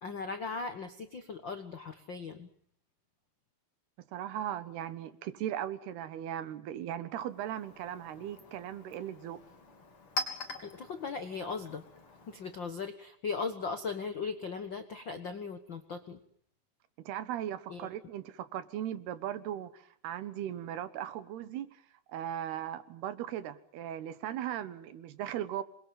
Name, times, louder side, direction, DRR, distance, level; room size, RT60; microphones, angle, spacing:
voice 1, 0.0-2.5 10.6-11.8 12.3-16.2 17.7-17.9, left 4 dB, 70° left, 9 dB, 1.1 m, -38 dB
voice 2, 4.1-9.4 17.0-21.7 22.1-25.6, right 11 dB, 85° right, 13 dB, 3.4 m, -38 dB
Chink clink, 7.2-12.7, left 1 dB, 35° left, 4.1 m, -43 dB
27.0 x 23.0 x 7.7 m, 0.62 s
omnidirectional pair, 4.5 m